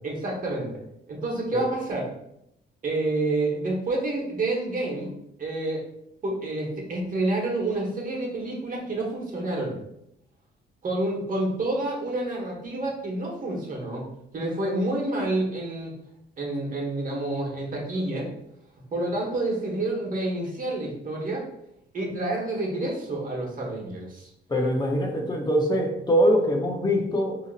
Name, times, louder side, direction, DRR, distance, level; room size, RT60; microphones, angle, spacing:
voice 1, 0.0-0.8 1.1-2.0 2.8-5.1 5.4-5.8 6.2-9.8 10.8-14.1 14.3-15.9 16.4-18.3 18.9-21.5 21.9-24.3, right 2 dB, 45° right, -1 dB, 1.3 m, -28 dB
voice 2, 24.5-27.4, equal, 20° left, 1 dB, 0.8 m, -23 dB
4.7 x 2.9 x 2.5 m, 0.80 s
cardioid pair, 90°, 20 cm